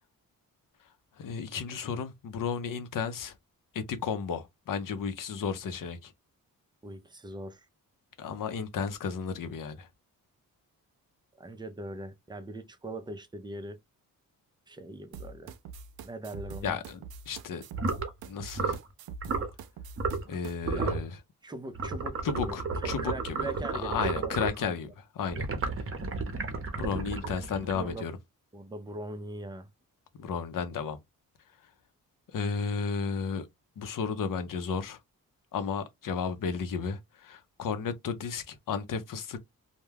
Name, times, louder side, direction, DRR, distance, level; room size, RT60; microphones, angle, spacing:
voice 1, 1.2-3.3 3.7-6.1 8.2-9.9 16.6-17.6 18.2-18.8 20.2-21.2 22.2-23.4 23.8-25.5 26.8-28.1 30.2-31.0 32.3-33.5 33.8-35.0 35.5-39.4, left 6 dB, 60° left, 0.7 m, -33 dB
voice 2, 6.8-7.7 11.4-13.8 14.7-15.5 16.0-16.8 20.7-21.0 21.4-24.8 27.2-27.3 27.7-28.1 28.5-29.7, right 2 dB, 15° right, 0.5 m, -41 dB
sound 1, 15.1-20.5, right 5 dB, 80° right, 0.5 m, -43 dB
sound 2, 17.7-18.1 18.5-18.9 19.2-19.5 20.0-20.3 20.6-21.1 21.8-24.6 25.3-28.1, right 4 dB, 35° right, 0.7 m, -32 dB
2.2 x 2.2 x 3.2 m
cardioid pair, 75°, 36 cm